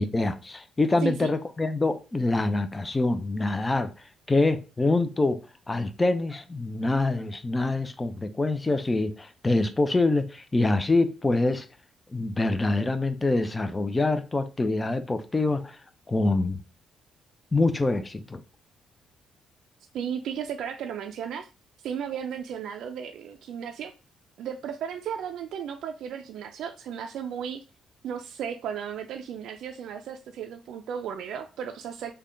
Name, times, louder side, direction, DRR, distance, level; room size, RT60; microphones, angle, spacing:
voice 1, 0.0-3.9 4.3-5.4 5.7-11.7 12.1-15.8 16.1-16.6 17.5-18.4, left 2 dB, 20° left, 0.4 m, -25 dB
voice 2, 19.9-21.5 21.8-23.9 24.4-27.6 28.0-32.2, right 8 dB, 80° right, 0.3 m, -34 dB
3.4 x 2.2 x 3.7 m
cardioid pair, 90°, 0 cm